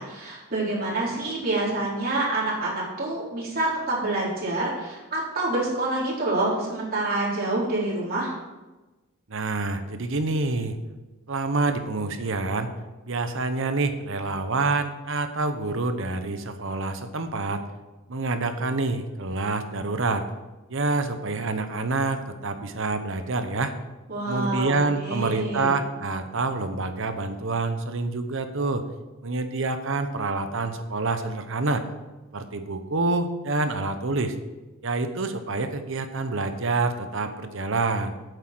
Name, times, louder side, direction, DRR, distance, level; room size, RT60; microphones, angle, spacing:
voice 1, 0.0-8.3 24.1-25.7, right 2 dB, 45° right, -6 dB, 3.9 m, -27 dB
voice 2, 9.3-10.8 11.3-12.7 13.1-17.6 18.1-20.3 20.7-23.7 24.3-28.8 29.2-31.8 32.3-34.4 34.8-38.1, right 3 dB, 65° right, 8 dB, 1.0 m, -27 dB
9.0 x 8.1 x 6.2 m, 1.1 s
head